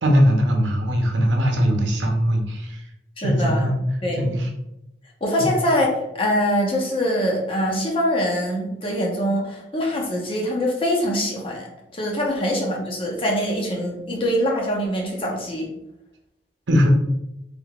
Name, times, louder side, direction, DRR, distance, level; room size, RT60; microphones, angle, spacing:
voice 1, 0.0-2.9 3.2-3.8 4.2-4.5 5.4-5.5 16.7-16.9, equal, 90° right, 3 dB, 0.7 m, -20 dB
voice 2, 3.2-3.7 4.0-4.4 5.2-15.7, equal, 30° left, -1 dB, 0.7 m, -24 dB
3.4 x 3.3 x 2.3 m, 0.85 s
head